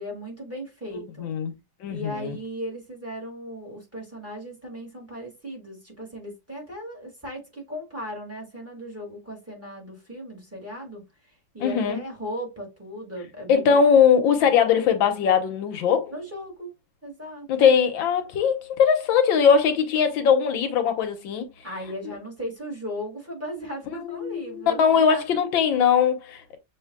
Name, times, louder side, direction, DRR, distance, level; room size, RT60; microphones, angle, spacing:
voice 1, 0.0-1.3 1.9-13.9 16.1-16.7 17.0-17.7 21.6-25.2 25.7-25.9, equal, 10° right, 1.9 m, -37 dB
voice 2, 1.2-1.5 1.8-2.3 11.6-12.0 13.5-16.1 17.5-21.5 24.0-26.6, left 7 dB, 85° left, 1.7 m, -20 dB
6.5 x 3.2 x 2.3 m
omnidirectional pair, 2.1 m